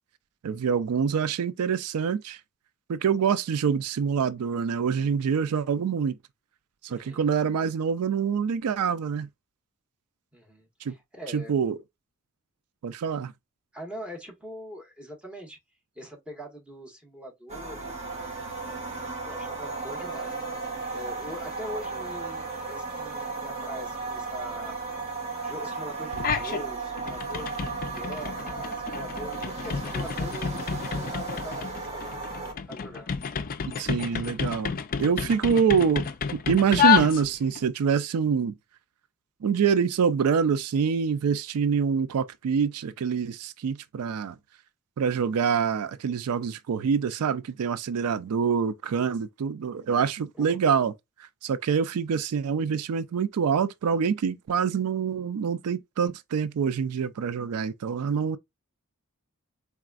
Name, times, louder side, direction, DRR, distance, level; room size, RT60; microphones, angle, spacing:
voice 1, 0.4-2.4 2.9-6.2 6.8-9.3 10.8-10.9 11.3-11.8 12.8-13.3 33.8-36.1 36.3-38.6 39.4-44.4 45.0-50.9 51.2-58.4, right 6 dB, 90° right, 0.4 m, -26 dB
voice 2, 6.9-7.3 10.3-11.6 13.7-15.6 15.9-18.2 18.8-24.7 25.4-33.1 50.4-50.6, equal, 5° right, 1.3 m, -43 dB
sound 1, 17.5-32.5, right 4 dB, 30° right, 1.7 m, -35 dB
sound 2, 26.1-26.6 27.0-37.6, left 7 dB, 40° left, 0.4 m, -29 dB
4.0 x 3.5 x 2.4 m
head